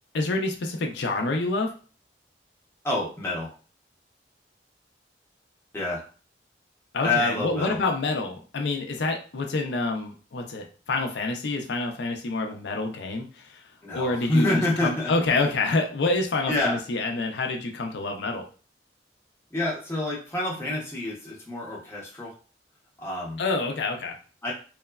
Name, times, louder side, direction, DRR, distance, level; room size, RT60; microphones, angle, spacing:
voice 1, 0.1-1.7 6.9-18.5 23.4-24.2, left 3 dB, 75° left, 3 dB, 0.4 m, -27 dB
voice 2, 2.8-3.5 5.7-6.0 7.0-7.8 13.8-15.1 16.5-16.8 19.5-22.3 23.0-23.4 24.4-24.5, left 2 dB, 15° left, -4 dB, 0.7 m, -27 dB
3.0 x 2.0 x 2.3 m, 0.38 s
head